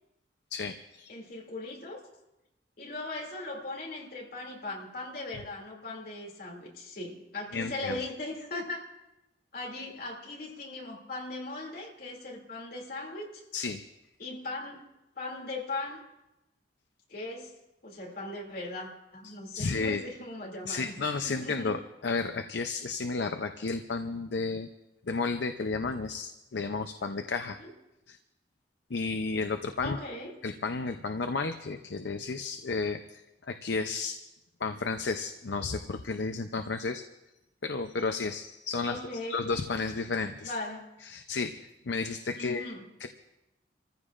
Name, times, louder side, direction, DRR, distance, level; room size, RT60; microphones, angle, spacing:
voice 1, 0.5-1.1 7.5-8.0 13.5-13.8 19.2-20.0 20.6-24.7 25.1-27.6 28.1-28.2 28.9-30.0 30.4-34.2 34.6-37.0 37.6-39.0 39.3-40.5 41.0-42.7 43.0-43.1, left 4 dB, 70° left, 7 dB, 0.6 m, -32 dB
voice 2, 1.1-2.0 2.8-8.9 9.5-13.4 14.2-16.0 17.1-17.5 17.8-20.9 21.2-21.8 27.6-27.7 29.8-30.4 38.8-39.5 40.4-40.9 42.4-42.8, left 2 dB, 55° left, -1 dB, 2.7 m, -39 dB
28.5 x 15.0 x 2.5 m, 0.94 s
head